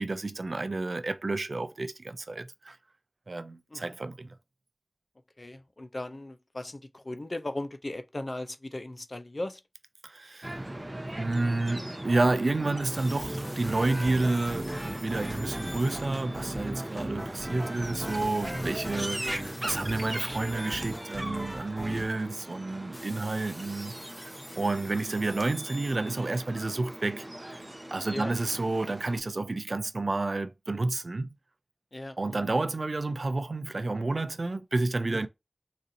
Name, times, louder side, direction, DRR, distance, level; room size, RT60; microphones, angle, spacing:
voice 1, 0.0-2.8 3.3-4.3 10.0-10.7 11.2-27.7 27.9-31.3 32.2-35.3, right 2 dB, 85° right, 0.3 m, -30 dB
voice 2, 5.4-9.6 15.7-16.0 18.9-19.7 24.6-24.7 28.1-28.3 31.9-32.5 35.1-35.3, left 1 dB, 60° left, 0.4 m, -38 dB
sound 1, 10.4-29.2, right 1 dB, 40° right, 0.6 m, -39 dB
sound 2, 11.8-12.2 12.9-17.1 17.9-22.1 22.9-26.1, equal, 15° left, 0.9 m, -48 dB
sound 3, 13.2-22.1, equal, 20° right, 1.0 m, -39 dB
4.1 x 2.5 x 2.6 m
wide cardioid pair, 45°, 0 cm